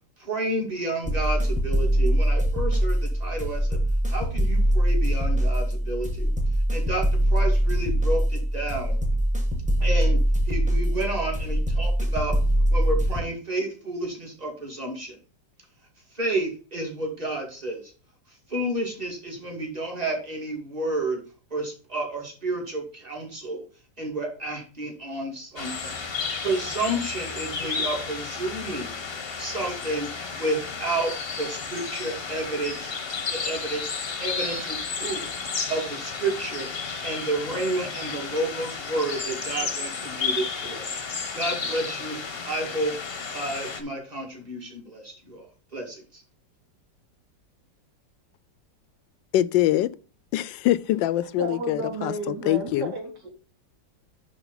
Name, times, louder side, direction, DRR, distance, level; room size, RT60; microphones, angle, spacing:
voice 1, 0.2-3.8 4.1-6.3 6.7-9.0 9.8-10.2 10.5-12.3 12.7-15.2 16.1-17.8 18.5-21.2 21.5-23.6 24.0-26.0 26.4-29.0 29.4-30.1 30.3-31.1 31.4-32.9 33.3-33.8 34.2-35.2 35.7-36.7 37.0-40.8 41.3-42.2 42.4-43.0 43.3-45.5 45.7-46.2, right 2 dB, 20° right, 2.3 m, -30 dB
sound 1, 1.0-13.2, equal, 5° right, 1.1 m, -23 dB
sound 2, 25.6-43.8, left 5 dB, 40° left, 1.0 m, -32 dB
voice 2, 49.3-49.9 50.3-52.9, left 14 dB, 85° left, 1.3 m, -24 dB
voice 3, 51.2-53.3, right 3 dB, 65° right, 2.7 m, -33 dB
10.5 x 3.6 x 4.0 m
omnidirectional pair, 2.0 m